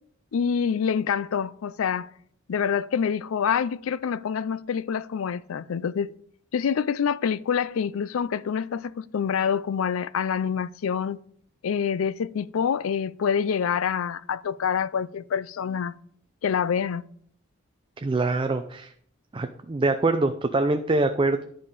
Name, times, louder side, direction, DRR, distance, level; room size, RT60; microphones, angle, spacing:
voice 1, 0.3-2.1 2.5-6.1 6.5-11.2 11.6-15.9 16.4-17.0, left 7 dB, 85° left, 0.4 m, -26 dB
voice 2, 18.0-18.9 19.3-21.4, right 2 dB, 25° right, 0.4 m, -24 dB
11.0 x 5.1 x 5.3 m
head